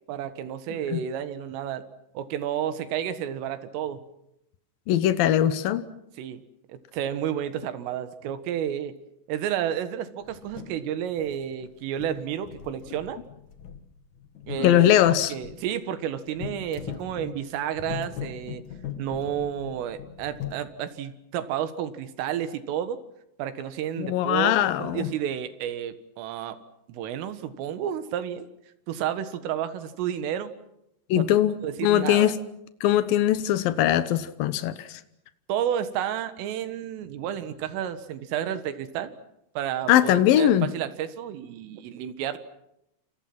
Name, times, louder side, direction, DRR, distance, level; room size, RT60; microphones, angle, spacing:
voice 1, 0.1-1.8 2.2-4.0 6.2-6.4 6.7-8.9 9.3-13.2 14.5-14.9 15.3-18.6 19.0-23.0 23.4-24.5 24.8-26.6 26.9-28.5 28.9-30.5 31.2-31.3 31.6-32.4 35.5-39.1 39.6-42.4, right 10 dB, 85° right, 11 dB, 4.1 m, -31 dB
voice 2, 0.7-1.0 4.9-5.8 14.6-15.3 24.0-25.1 31.1-32.4 32.8-35.0 39.9-40.7, left 12 dB, 80° left, 12 dB, 2.0 m, -21 dB
sound 1, 10.2-10.8 11.2-11.7 11.9-15.6 16.3-20.6, left 9 dB, 50° left, 2.5 m, -40 dB
29.5 x 27.5 x 6.0 m, 0.81 s
omnidirectional pair, 5.7 m